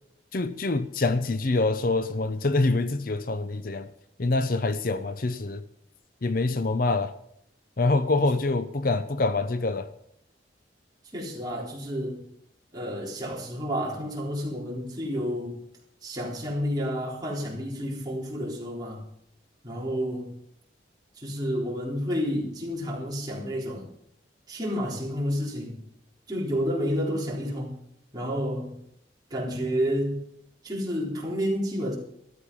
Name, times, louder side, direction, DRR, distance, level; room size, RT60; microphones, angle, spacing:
voice 1, 0.3-3.9 4.2-5.6 6.2-7.1 7.8-9.9, left 3 dB, 50° left, 0.6 m, -25 dB
voice 2, 11.1-12.2 12.7-15.6 16.0-19.0 19.6-20.3 21.2-23.9 24.5-25.8 26.3-27.8 28.1-28.8 29.3-30.2 30.6-31.9, equal, 20° right, 3.9 m, -30 dB
13.5 x 12.5 x 5.5 m
head